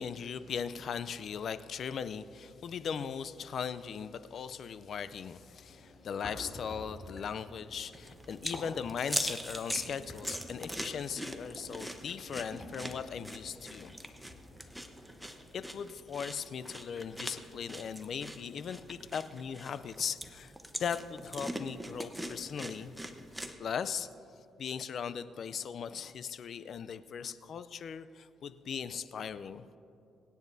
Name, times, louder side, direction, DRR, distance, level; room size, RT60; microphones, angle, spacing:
voice 1, 0.0-13.9 15.5-20.5 20.8-23.0 23.6-24.1 24.6-29.7, left 7 dB, 60° left, 13 dB, 0.5 m, -38 dB
sound 1, 5.3-15.4, left 1 dB, 25° left, 2.6 m, -51 dB
sound 2, 7.9-23.5, equal, 5° right, 0.9 m, -42 dB
24.5 x 9.4 x 2.7 m, 2.7 s
cardioid pair, 90°, 0 cm